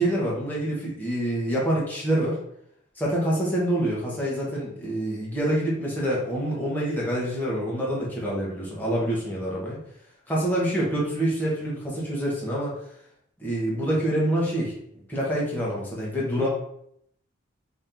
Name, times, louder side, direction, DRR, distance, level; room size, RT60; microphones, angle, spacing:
voice 1, 0.0-2.4 3.0-9.8 10.3-12.7 13.4-14.7 15.1-16.5, right 1 dB, 10° left, -6 dB, 0.9 m, -26 dB
2.9 x 2.7 x 3.6 m, 0.72 s
head